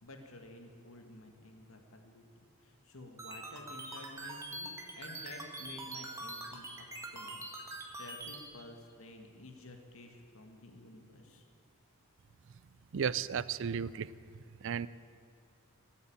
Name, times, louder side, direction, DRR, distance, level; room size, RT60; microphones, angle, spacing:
voice 1, 0.0-2.2 2.6-7.4 8.0-11.4, left 2 dB, 65° left, 4 dB, 1.9 m, -52 dB
sound 1, 3.2-8.4, right 2 dB, 15° right, 1.7 m, -43 dB
voice 2, 12.9-14.1 14.6-14.9, right 7 dB, 60° right, 18 dB, 0.4 m, -34 dB
18.5 x 8.2 x 8.8 m, 2.4 s
head